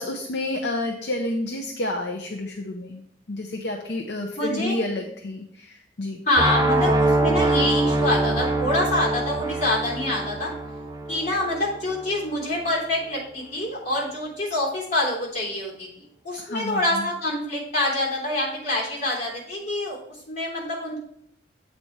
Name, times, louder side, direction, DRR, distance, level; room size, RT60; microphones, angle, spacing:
voice 1, 0.0-3.0 3.3-6.2 16.4-17.1, left 1 dB, 70° left, 2 dB, 0.7 m, -30 dB
voice 2, 4.4-4.8 6.3-10.5 11.1-21.0, left 1 dB, 40° left, -4 dB, 3.2 m, -26 dB
sound 1, 6.4-12.3, right 2 dB, 20° right, 0.6 m, -24 dB
8.2 x 4.3 x 4.6 m, 0.72 s
head